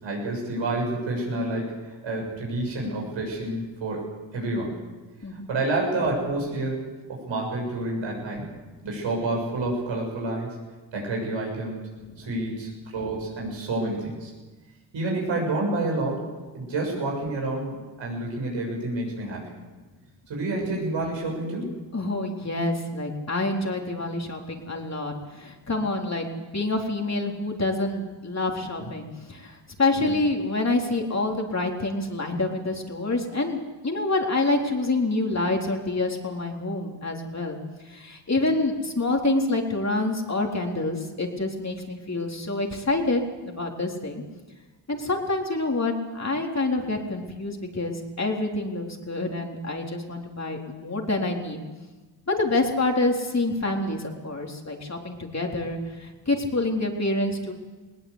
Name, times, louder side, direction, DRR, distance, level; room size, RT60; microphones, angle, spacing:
voice 1, 0.0-4.7 5.5-6.8 7.1-8.5 8.8-10.6 10.9-11.9 12.2-14.3 14.9-16.2 16.5-19.4 20.3-21.7 30.0-30.2, right 2 dB, 90° right, -1 dB, 6.8 m, -29 dB
voice 2, 21.9-26.3 26.5-37.6 37.9-44.2 44.9-51.6 52.3-57.5, left 2 dB, 35° left, 1 dB, 3.9 m, -27 dB
19.5 x 18.5 x 8.2 m, 1.2 s
cardioid pair, 50°, 44 cm